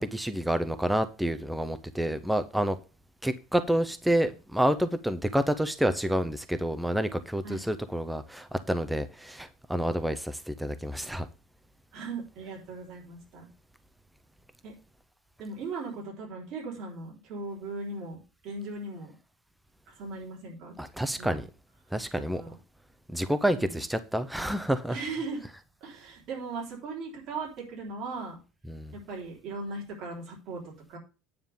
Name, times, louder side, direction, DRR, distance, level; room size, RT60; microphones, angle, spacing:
voice 1, 0.0-2.8 3.2-11.3 20.8-21.5 21.9-22.4 23.1-25.0 28.7-28.9, right 1 dB, 5° right, 0.5 m, -28 dB
voice 2, 11.9-13.5 14.6-14.7 15.4-19.1 19.9-20.8 21.2-21.4 22.4-22.6 23.5-23.8 24.9-25.5 25.8-28.4 28.9-31.0, right 3 dB, 45° right, 3.6 m, -38 dB
9.5 x 3.7 x 6.9 m
cardioid pair, 165°, 0 cm